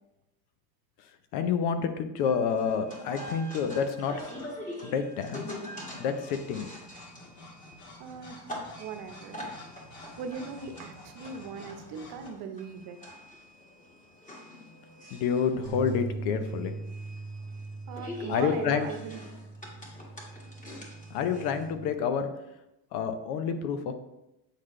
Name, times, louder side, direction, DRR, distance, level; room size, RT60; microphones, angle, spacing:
voice 1, 1.3-4.5 4.8-5.5 6.0-6.7 15.1-16.7 18.3-18.9 21.1-22.3 22.9-23.9, left 6 dB, 90° left, 9 dB, 0.8 m, -29 dB
sound 1, 2.2-21.7, left 1 dB, 20° left, 1.6 m, -44 dB
sound 2, 2.9-4.7 5.4-12.3, left 1 dB, 50° left, 1.5 m, -51 dB
voice 2, 8.0-9.6 10.2-13.0 17.9-19.2, right 5 dB, 70° right, 7 dB, 0.9 m, -39 dB
sound 3, 15.7-21.9, right 3 dB, 40° right, 0.7 m, -40 dB
8.3 x 4.0 x 3.2 m, 0.91 s
cardioid pair, 135°, 39 cm